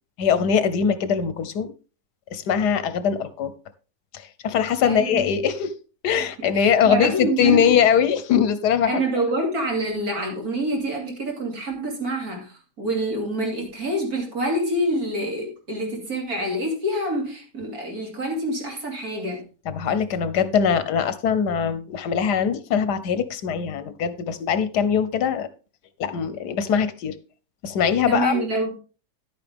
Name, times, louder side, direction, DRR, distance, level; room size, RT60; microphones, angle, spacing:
voice 1, 0.2-1.7 2.3-3.5 4.4-5.7 6.0-9.0 19.7-25.5 26.0-27.1 27.6-28.5, left 7 dB, 85° left, 1.5 m, -22 dB
voice 2, 4.8-5.4 6.2-7.8 8.9-19.4 28.1-28.8, right 1 dB, 65° right, 3.1 m, -27 dB
10.5 x 8.9 x 3.5 m
omnidirectional pair, 1.7 m